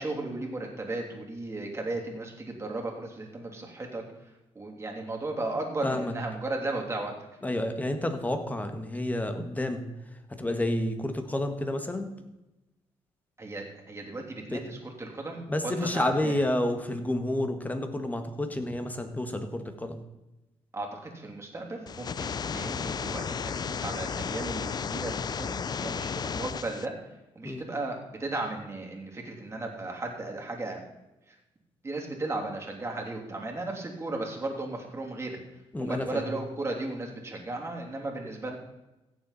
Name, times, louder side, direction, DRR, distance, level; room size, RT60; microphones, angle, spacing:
voice 1, 0.0-7.1 13.4-16.3 20.7-27.0 27.3-30.8 31.3-31.4 31.8-35.4 35.8-38.6, right 2 dB, 25° right, 0 dB, 3.0 m, -35 dB
voice 2, 5.8-6.1 7.4-9.8 10.3-12.1 14.5-14.6 15.5-20.0 27.4-27.6 35.7-36.2, left 1 dB, 15° left, 6 dB, 1.6 m, -30 dB
sound 1, 21.9-26.9, left 6 dB, 35° left, 0.5 m, -33 dB
16.0 x 7.1 x 4.2 m, 0.96 s
cardioid pair, 85°, 11 cm